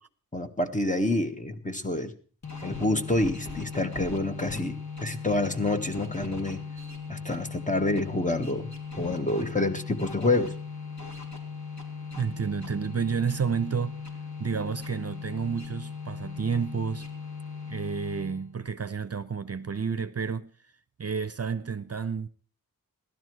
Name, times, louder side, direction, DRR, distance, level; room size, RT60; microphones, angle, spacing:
voice 1, 0.3-2.1 2.6-6.6 7.1-8.7 9.0-10.5, left 2 dB, 20° left, 1.4 m, -27 dB
sound 1, 2.4-18.6, left 5 dB, 50° left, 3.5 m, -38 dB
voice 2, 12.1-14.0 14.4-17.1 17.7-20.5 21.0-22.3, right 6 dB, 45° right, 0.7 m, -30 dB
16.0 x 12.0 x 4.6 m
wide cardioid pair, 80°, 35 cm